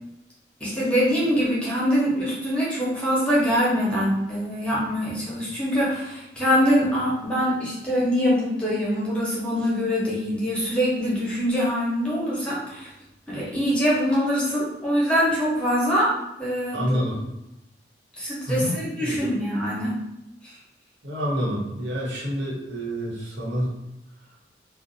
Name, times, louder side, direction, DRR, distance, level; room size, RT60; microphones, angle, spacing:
voice 1, 0.6-12.9 13.3-16.1 16.4-17.0 18.2-19.9, equal, 5° left, -7 dB, 0.7 m, -24 dB
voice 2, 16.7-17.2 18.5-19.2 21.0-23.7, equal, 90° right, -5 dB, 0.9 m, -28 dB
2.5 x 2.1 x 2.6 m, 0.88 s
head